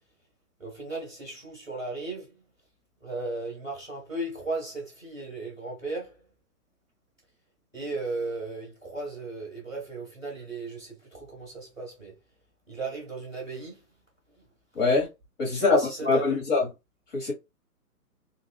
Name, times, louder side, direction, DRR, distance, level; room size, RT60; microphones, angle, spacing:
voice 1, 0.6-2.4 3.0-6.2 7.7-12.2 12.7-13.8 14.4-14.5 15.5-16.4, right 3 dB, ahead, 0.5 m, -36 dB
voice 2, 14.7-15.1 15.4-15.8 16.0-16.7 17.1-17.3, left 3 dB, 30° left, 1.8 m, -23 dB
4.0 x 2.5 x 2.4 m
hypercardioid pair, 150°, 46 cm